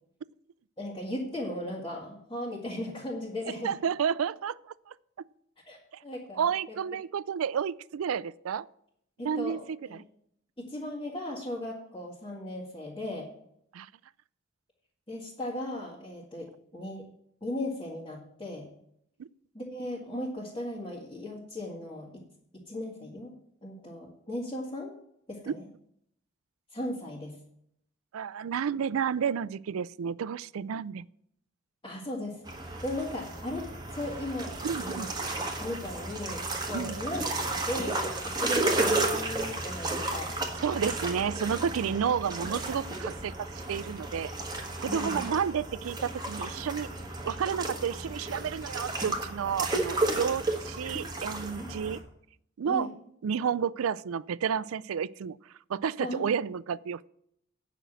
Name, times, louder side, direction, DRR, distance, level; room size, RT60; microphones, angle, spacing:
voice 1, 0.8-3.7 5.7-5.8 6.0-6.8 9.2-10.0 10.6-13.3 15.1-17.0 17.4-18.6 19.5-22.1 22.5-23.3 23.6-24.9 25.3-25.7 26.7-27.3 31.8-35.1 35.6-36.4 36.7-40.3 44.9-45.3 51.6-51.7 52.7-52.9 56.0-56.3, left 1 dB, 20° left, 2.0 m, -37 dB
voice 2, 3.6-4.6 4.9-5.3 6.4-8.7 9.2-9.6 9.9-10.0 13.7-13.9 19.2-19.3 25.5-25.6 28.1-31.1 34.6-35.1 36.7-37.0 40.6-44.3 44.8-47.0 47.2-52.0 52.6-52.9 53.2-57.1, right 7 dB, 90° right, 0.4 m, -31 dB
sound 1, 32.5-52.0, right 2 dB, 20° right, 1.4 m, -33 dB
9.1 x 6.0 x 8.0 m
head